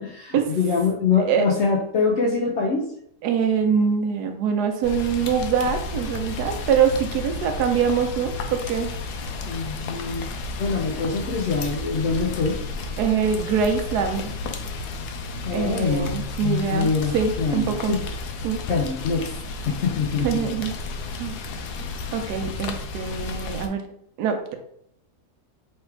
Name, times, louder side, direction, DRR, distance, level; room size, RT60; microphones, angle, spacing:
voice 1, 0.0-2.9 9.4-10.3 10.6-12.6 12.9-13.0 15.4-18.0 18.7-19.3 19.7-20.5, left 5 dB, 65° left, 1 dB, 0.7 m, -24 dB
voice 2, 3.2-8.9 13.0-14.3 15.5-17.9 18.4-18.6 20.2-20.7 21.2-21.4 22.1-23.8 24.2-24.6, right 7 dB, 80° right, 5 dB, 1.2 m, -24 dB
Rain, 4.8-23.7, left 3 dB, 90° left, 1.2 m, -32 dB
3.4 x 3.2 x 4.4 m, 0.71 s
omnidirectional pair, 1.7 m